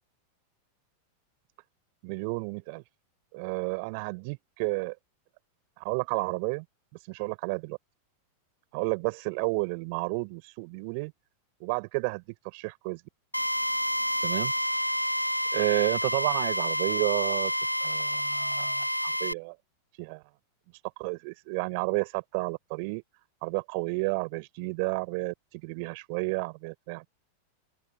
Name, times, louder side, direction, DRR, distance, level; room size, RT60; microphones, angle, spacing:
voice 1, 2.0-2.8 3.3-4.9 5.8-6.6 7.1-7.8 8.7-11.1 11.6-13.0 14.2-14.5 15.5-17.5 17.8-19.5 20.0-20.2 21.0-23.0 23.4-25.3 25.6-27.1, right 33 dB, 45° right, 6.8 m, -31 dB
Drill, 13.3-19.3, equal, 90° left, 1.8 m, -29 dB
open air
figure-of-eight pair, 90°, 0 cm